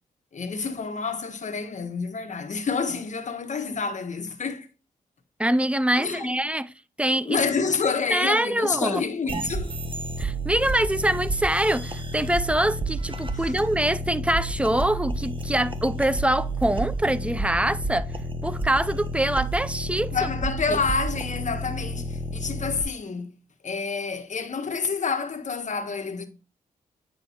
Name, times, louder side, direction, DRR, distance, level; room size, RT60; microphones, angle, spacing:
voice 1, 0.3-4.7 6.0-6.4 7.2-9.8 13.3-13.5 20.1-26.3, left 5 dB, 50° left, 1.4 m, -28 dB
voice 2, 5.4-6.7 7.0-7.4 8.1-9.0 10.2-18.1 18.4-20.3 20.7-20.8, right 1 dB, 10° right, 0.5 m, -24 dB
sound 1, 9.3-22.8, right 1 dB, 35° right, 1.2 m, -31 dB
9.4 x 5.0 x 3.0 m
supercardioid pair, 55°, 16 cm